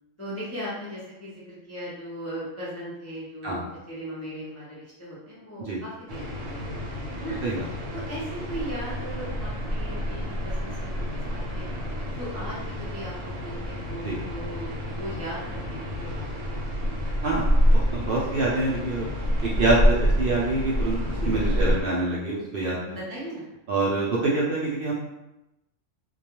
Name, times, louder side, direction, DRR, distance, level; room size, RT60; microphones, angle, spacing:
voice 1, 0.2-7.4 7.9-11.7 12.1-16.2 16.5-16.9 22.8-23.5, equal, 20° left, -8 dB, 0.4 m, -38 dB
sound 1, 6.1-21.8, equal, 85° right, 1.0 m, -27 dB
voice 2, 17.2-17.6 17.9-19.1 19.4-22.8 23.7-24.9, right 2 dB, 60° right, -5 dB, 0.6 m, -25 dB
2.3 x 2.2 x 2.9 m, 0.91 s
omnidirectional pair, 1.3 m